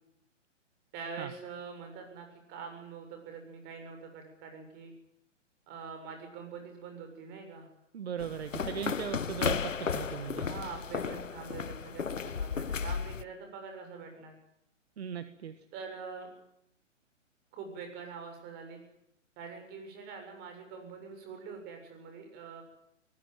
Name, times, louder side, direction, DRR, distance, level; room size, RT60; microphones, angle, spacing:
voice 1, 0.9-4.9 5.7-7.7 10.4-14.4 15.7-16.3 17.5-18.8 19.4-22.6, right 5 dB, 25° right, 5 dB, 7.3 m, -44 dB
voice 2, 7.9-10.5 15.0-15.6, right 8 dB, 55° right, 11 dB, 1.7 m, -38 dB
sound 1, 8.2-13.2, left 6 dB, 85° left, 0.9 m, -34 dB
22.5 x 20.0 x 9.3 m, 0.76 s
figure-of-eight pair, 130°, 38 cm